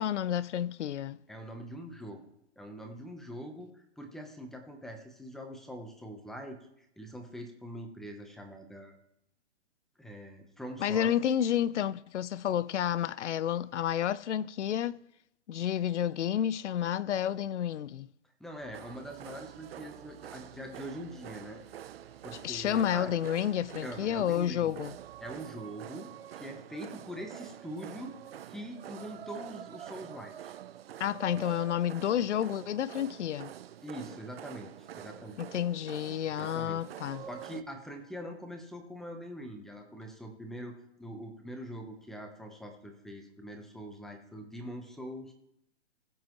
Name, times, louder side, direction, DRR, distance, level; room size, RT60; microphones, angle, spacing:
voice 1, 0.0-1.2 10.8-15.0 15.5-18.1 22.4-24.9 31.0-33.5 35.4-37.2, left 10 dB, 80° left, 0.6 m, -30 dB
voice 2, 1.3-2.2 2.6-9.0 10.0-11.1 18.4-21.6 22.2-23.1 23.8-24.7 25.2-28.2 28.5-30.6 33.8-35.4 36.4-36.8 37.2-45.3, equal, ahead, 0.8 m, -43 dB
sound 1, 18.6-25.4, right 9 dB, 85° right, 2.7 m, -58 dB
sound 2, 18.7-37.6, right 11 dB, 60° right, 0.6 m, -47 dB
20.0 x 7.6 x 3.0 m
hypercardioid pair, 150°, 35 cm